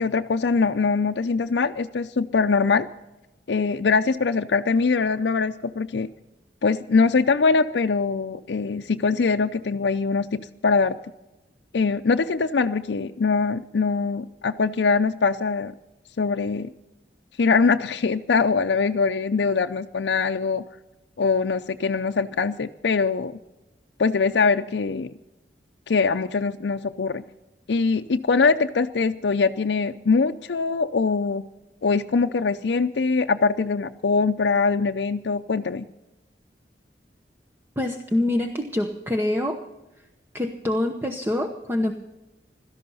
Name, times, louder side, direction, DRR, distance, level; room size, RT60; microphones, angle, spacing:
voice 1, 0.0-2.9 3.5-6.1 6.6-10.9 11.7-15.7 16.2-16.7 17.4-20.6 21.2-23.3 24.0-25.1 25.9-27.2 27.7-31.4 31.8-35.9, left 4 dB, 75° left, 5 dB, 0.5 m, -22 dB
voice 2, 37.8-39.6 40.3-41.9, left 1 dB, 15° right, 5 dB, 0.9 m, -25 dB
17.0 x 13.0 x 5.5 m, 1.0 s
head